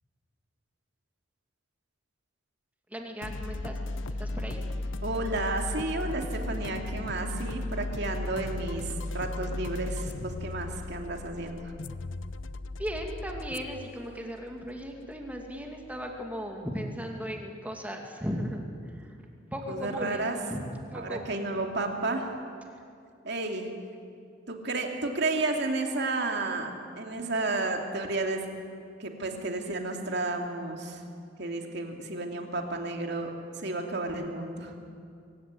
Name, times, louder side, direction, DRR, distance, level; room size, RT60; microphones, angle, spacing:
voice 1, 2.9-3.8 4.2-4.6 12.8-19.2 19.5-20.2 20.5-20.7 20.9-21.2, equal, 10° right, 2 dB, 2.5 m, -36 dB
sound 1, 3.2-16.6, left 2 dB, 75° left, 0.7 m, -37 dB
voice 2, 5.0-8.9 9.1-11.7 19.7-20.4 20.9-22.3 23.2-23.7 24.5-28.5 29.0-31.0 31.4-34.7, right 2 dB, 60° right, 3 dB, 2.7 m, -32 dB
24.0 x 16.0 x 9.7 m, 2.4 s
head